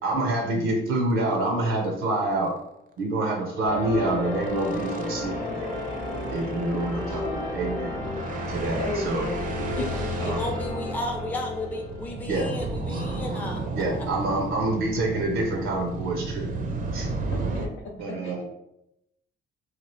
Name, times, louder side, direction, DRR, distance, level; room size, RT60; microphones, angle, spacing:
voice 1, 0.0-2.5 3.0-5.7 6.3-8.0 8.5-9.3 10.2-10.5 12.3-12.5 12.9-13.0 13.7-16.5 16.9-17.1 18.0-18.4, right 2 dB, 85° right, 1 dB, 0.6 m, -27 dB
sound 1, 1.0-1.1 1.5-1.6 1.8-2.0 2.3-2.5 3.8-17.7, right 3 dB, 45° right, 0.5 m, -34 dB
sound 2, 3.7-12.9, left 1 dB, 30° left, 0.8 m, -33 dB
voice 2, 7.1-7.4 8.8-9.4 9.8-10.0 17.3-17.7 18.2-18.4, left 3 dB, 80° left, -3 dB, 0.5 m, -34 dB
voice 3, 10.2-13.6, left 1 dB, 10° left, 1 dB, 0.5 m, -33 dB
2.8 x 2.3 x 3.0 m, 0.82 s
cardioid pair, 90°, 20 cm